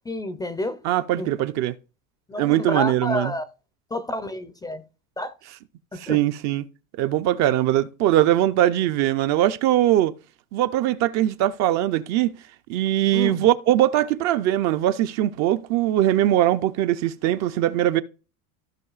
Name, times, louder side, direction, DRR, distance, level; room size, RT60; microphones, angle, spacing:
voice 1, 0.1-0.8 1.2-1.3 2.3-3.4 3.9-4.8 5.2-5.3 5.9-6.2 13.1-13.4, left 1 dB, 10° left, 0.4 m, -29 dB
voice 2, 0.8-1.8 2.4-3.3 6.0-6.7 7.0-10.1 10.5-12.3 12.7-18.0, right 13 dB, 45° right, 0.5 m, -21 dB
15.5 x 5.4 x 2.4 m
supercardioid pair, 125°, 40 cm